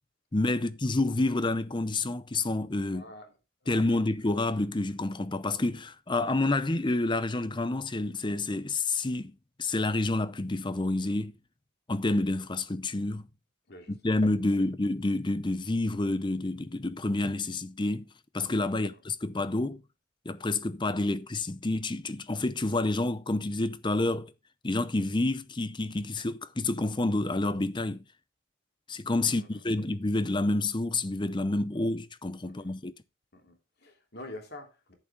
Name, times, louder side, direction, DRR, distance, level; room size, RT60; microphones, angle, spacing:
voice 1, 0.3-3.0 3.7-9.3 9.6-11.3 11.9-13.2 13.9-18.1 18.3-19.8 20.3-24.3 24.6-28.0 28.9-32.9, left 2 dB, 20° left, 0.6 m, -29 dB
voice 2, 2.8-3.3 3.6-4.0 13.7-14.1 14.6-14.7 18.7-19.0 29.2-29.8 32.5-32.7 33.3-34.9, left 1 dB, 50° left, 3.0 m, -47 dB
10.5 x 8.7 x 3.5 m
head